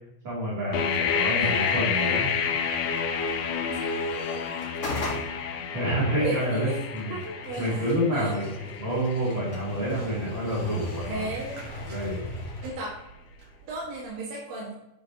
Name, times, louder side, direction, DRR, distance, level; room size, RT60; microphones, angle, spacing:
voice 1, 0.2-2.3 5.7-7.2 7.6-8.5 8.8-11.2 11.9-12.2, equal, 35° right, -10 dB, 3.1 m, -28 dB
sound 1, 0.7-12.5, left 6 dB, 80° left, 1.5 m, -31 dB
sound 2, 0.7-12.7, left 2 dB, 55° left, 0.8 m, -43 dB
voice 2, 6.2-6.8 7.1-8.4 11.1-11.7 12.6-12.9 13.6-14.7, right 2 dB, 85° right, -5 dB, 3.7 m, -35 dB
Motorcycle, 7.3-14.1, equal, 50° right, 2.8 m, -38 dB
11.0 x 5.1 x 2.9 m, 0.92 s
omnidirectional pair, 4.1 m